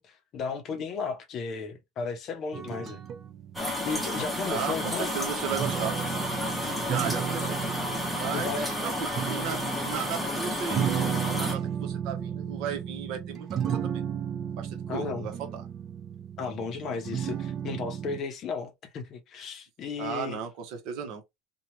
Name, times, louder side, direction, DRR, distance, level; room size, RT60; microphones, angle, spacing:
voice 1, 0.0-3.0 3.8-5.2 8.3-8.7 14.9-15.3 16.4-20.4, left 5 dB, 40° left, 0.7 m, -34 dB
sound 1, 2.5-3.6 5.5-18.2, right 8 dB, 35° right, 0.5 m, -34 dB
sound 2, 3.5-11.5, left 1 dB, ahead, 0.8 m, -31 dB
voice 2, 4.5-6.0 6.9-7.6 8.1-10.9 11.3-13.9 14.6-15.6 20.0-21.2, right 7 dB, 60° right, 0.9 m, -35 dB
2.8 x 2.3 x 3.0 m
cardioid pair, 150°, 0 cm